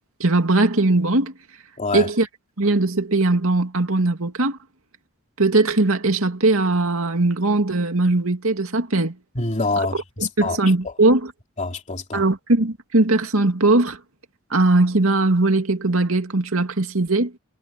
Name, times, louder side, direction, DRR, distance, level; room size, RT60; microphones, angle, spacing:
voice 1, 0.2-1.3 1.9-2.3 2.6-4.6 5.4-9.2 9.8-9.9 10.4-11.3 12.1-14.0 14.5-17.3, right 2 dB, 90° right, 2.4 m, -19 dB
voice 2, 1.8-2.1 9.3-10.6 11.6-12.2, left 3 dB, 35° left, 3.1 m, -26 dB
head